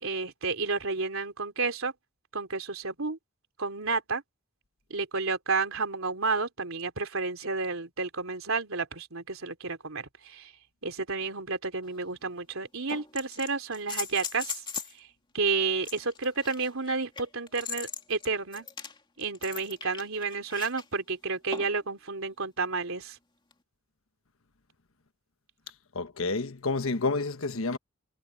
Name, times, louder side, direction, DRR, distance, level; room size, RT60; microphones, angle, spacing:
voice 1, 0.0-1.9 2.3-3.2 3.6-4.2 4.9-10.5 10.8-14.6 15.3-18.7 19.2-23.2, right 4 dB, 80° right, 3.2 m, -31 dB
sound 1, 11.8-11.9 12.9-15.0 15.8-20.8 21.5-21.9 23.5-23.6, left 5 dB, 25° left, 2.6 m, -39 dB
voice 2, 25.9-27.8, left 3 dB, 85° left, 1.3 m, -29 dB
head